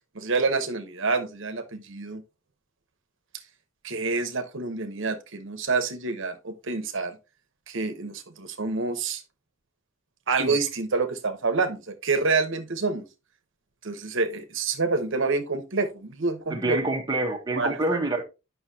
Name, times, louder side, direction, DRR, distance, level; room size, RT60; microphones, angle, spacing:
voice 1, 0.1-2.2 3.8-7.2 7.7-9.2 10.3-13.1 13.8-16.8 17.5-17.8, right 4 dB, 65° right, 1.0 m, -27 dB
voice 2, 16.5-18.2, right 2 dB, 20° right, 1.1 m, -27 dB
9.5 x 5.9 x 2.8 m
head